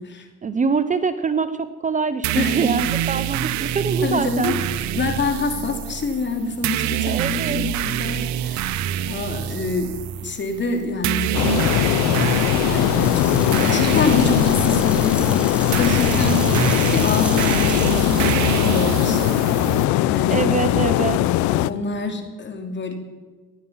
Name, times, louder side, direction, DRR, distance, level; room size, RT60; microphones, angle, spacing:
voice 1, 0.4-4.5 7.0-7.7 16.2-16.7 20.3-21.2, right 5 dB, 25° right, 12 dB, 0.7 m, -24 dB
sound 1, 2.2-19.8, right 11 dB, 65° right, 0.8 m, -26 dB
voice 2, 2.4-2.7 4.0-11.9 12.6-16.6 16.9-19.8 20.1-20.8 21.4-22.9, left 3 dB, 35° left, 5 dB, 2.9 m, -27 dB
sound 2, 11.3-21.7, left 15 dB, 70° left, 0.6 m, -20 dB
sound 3, 13.0-19.3, equal, 5° right, 2.5 m, -33 dB
15.5 x 11.0 x 5.7 m, 1.3 s
supercardioid pair, 90°, 31 cm